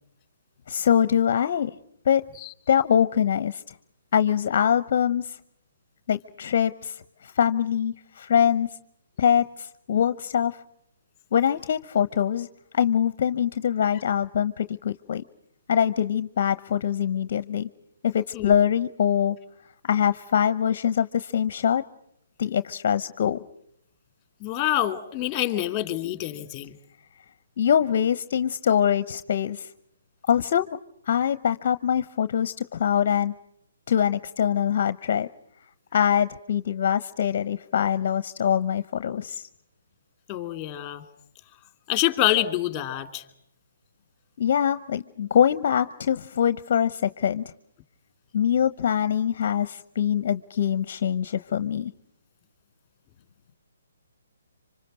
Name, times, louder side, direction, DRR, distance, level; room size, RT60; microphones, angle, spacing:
voice 1, 0.7-1.7 2.1-2.3 2.7-3.6 4.1-5.4 6.1-8.7 9.2-10.6 11.3-12.5 12.7-15.2 15.7-17.7 18.0-19.4 19.8-21.8 22.4-23.4 27.6-29.7 30.3-30.8 31.1-33.3 33.9-35.3 35.9-39.4 44.4-47.4 48.3-51.9, left 8 dB, 50° left, 14 dB, 0.9 m, -23 dB
voice 2, 24.4-26.7 40.3-41.0 41.9-43.2, left 13 dB, 20° left, 8 dB, 2.7 m, -26 dB
27.0 x 25.5 x 6.4 m, 0.76 s
hypercardioid pair, 150°, 0 cm